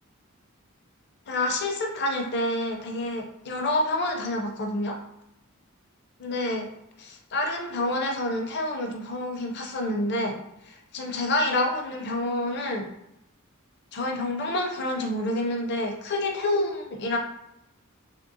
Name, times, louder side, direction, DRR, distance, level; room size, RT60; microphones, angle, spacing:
voice 1, 1.3-5.0 6.2-6.7 7.0-10.4 10.7-12.9 13.9-17.2, left 1 dB, 55° left, 1 dB, 0.6 m, -28 dB
3.6 x 2.0 x 2.7 m, 0.84 s
head